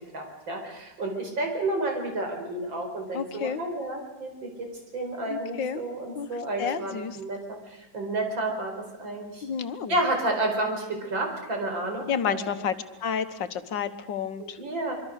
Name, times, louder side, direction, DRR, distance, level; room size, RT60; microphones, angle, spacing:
voice 1, 0.1-9.5 9.9-12.4 14.4-14.9, right 2 dB, 85° right, 2 dB, 5.5 m, -31 dB
voice 2, 3.1-3.6 5.3-5.8 6.1-6.3 6.6-7.2 9.4-10.0 12.1-12.8 13.0-14.6, left 7 dB, 75° left, 11 dB, 1.9 m, -30 dB
25.5 x 24.5 x 6.6 m, 1.0 s
omnidirectional pair, 2.0 m